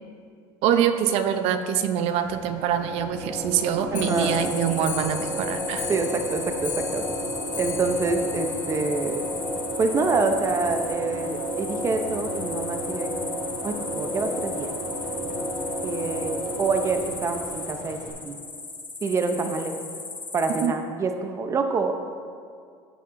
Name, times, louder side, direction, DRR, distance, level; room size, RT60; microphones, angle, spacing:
voice 1, 0.6-5.9 20.6-20.7, right 9 dB, 70° right, 9 dB, 0.7 m, -24 dB
sound 1, 2.1-18.1, equal, 50° right, 2.2 m, -32 dB
Clock, 3.9-9.4 9.7-9.8 10.1-10.2 10.5-10.6 10.9-11.0 11.7-11.8 12.5-12.6 13.2-13.3, left 8 dB, 40° left, 2.3 m, -39 dB
voice 2, 3.9-4.4 5.9-7.1 7.6-9.3 9.8-13.1 13.6-14.7 15.8-18.0 18.2-18.4 19.0-19.8 20.3-21.9, right 4 dB, 25° right, 5 dB, 0.7 m, -26 dB
sound 2, 4.1-20.7, left 3 dB, 15° left, 0.9 m, -36 dB
15.0 x 6.6 x 2.6 m, 2.2 s
cardioid pair, 130°, 11 cm